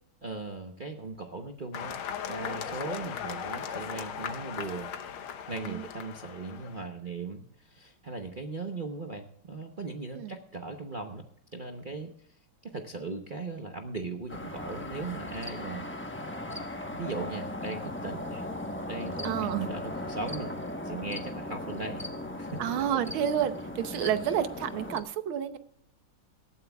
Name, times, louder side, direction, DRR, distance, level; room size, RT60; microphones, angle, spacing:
voice 1, 0.2-2.0 2.3-4.9 5.5-11.3 11.5-12.1 12.6-16.1 16.9-18.5 18.9-19.3 19.5-20.5 20.8-22.1 22.4-22.6 23.9-24.0, right 3 dB, 45° right, 3 dB, 0.6 m, -38 dB
sound 1, 1.7-6.9, left 7 dB, 85° left, 1.8 m, -38 dB
sound 2, 14.3-25.0, left 1 dB, 15° left, 0.4 m, -37 dB
voice 2, 19.2-19.7 22.6-25.6, right 9 dB, 80° right, 11 dB, 1.7 m, -30 dB
18.5 x 13.0 x 2.3 m, 0.67 s
omnidirectional pair, 2.2 m